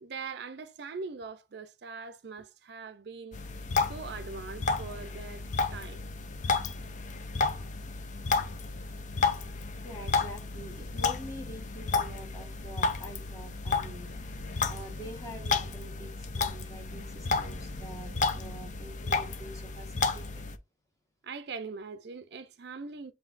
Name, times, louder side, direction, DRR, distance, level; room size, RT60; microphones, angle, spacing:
voice 1, 0.0-3.4 3.9-5.4 5.7-6.0 9.4-9.5 21.2-23.1, right 4 dB, 60° right, 0.4 m, -41 dB
sound 1, 3.3-20.6, left 4 dB, 40° left, 0.5 m, -32 dB
sound 2, 9.5-19.0, left 2 dB, 75° left, 1.0 m, -51 dB
voice 2, 9.8-14.1 14.7-20.5, right 1 dB, 15° left, 1.2 m, -46 dB
7.6 x 2.7 x 2.5 m
head